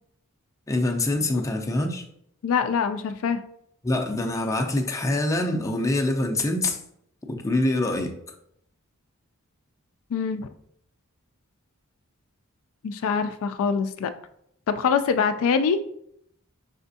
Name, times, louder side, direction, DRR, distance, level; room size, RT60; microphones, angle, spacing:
voice 1, 0.7-2.0 3.8-6.8 7.3-8.1, left 2 dB, 15° left, 2 dB, 0.5 m, -25 dB
voice 2, 2.4-3.4 10.1-10.5 12.8-14.1 14.7-15.8, left 6 dB, 65° left, 9 dB, 0.3 m, -24 dB
4.9 x 3.5 x 2.7 m, 0.71 s
head